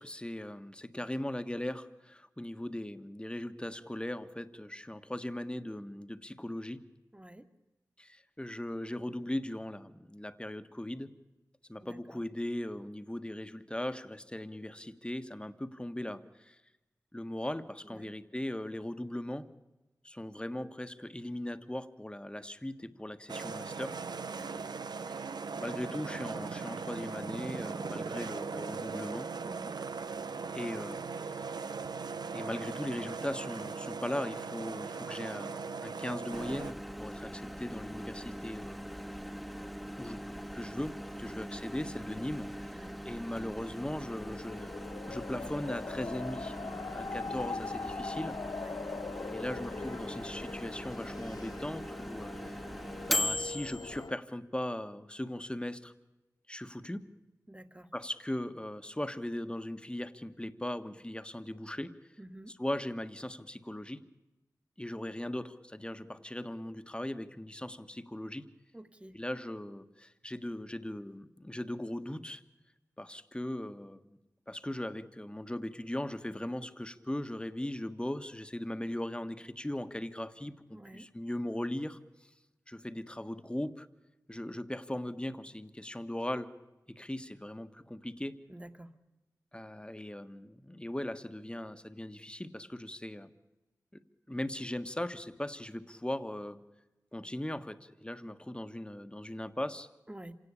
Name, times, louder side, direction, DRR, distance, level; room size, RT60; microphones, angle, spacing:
voice 1, 0.0-6.8 8.0-11.1 11.7-16.6 17.1-19.5 20.0-23.9 25.1-29.3 30.5-31.5 32.3-39.2 40.0-48.4 49.3-52.6 53.1-55.9 56.5-57.1 57.9-61.9 62.5-64.0 64.8-68.5 69.1-72.4 73.0-74.2 74.5-82.3 82.7-83.9 84.3-86.5 86.9-88.4 89.5-93.3 94.3-96.6 97.1-99.9, left 1 dB, 15° left, 11 dB, 1.5 m, -39 dB
voice 2, 7.1-7.5 11.8-12.0 17.9-18.1 24.3-24.7 29.4-29.7 41.2-41.5 42.1-42.2 42.7-43.0 48.6-48.8 57.5-57.9 62.2-62.5 68.7-69.2 80.7-81.1 88.5-88.9 100.1-100.3, right 1 dB, 15° right, 9 dB, 1.8 m, -49 dB
sound 1, 23.3-36.7, right 5 dB, 85° right, 0.8 m, -39 dB
Microwave oven, 36.3-54.1, left 1 dB, ahead, 1.5 m, -40 dB
sound 2, 43.6-54.1, left 4 dB, 70° left, 0.8 m, -42 dB
26.0 x 17.5 x 8.4 m, 1.1 s
cardioid pair, 40°, 7 cm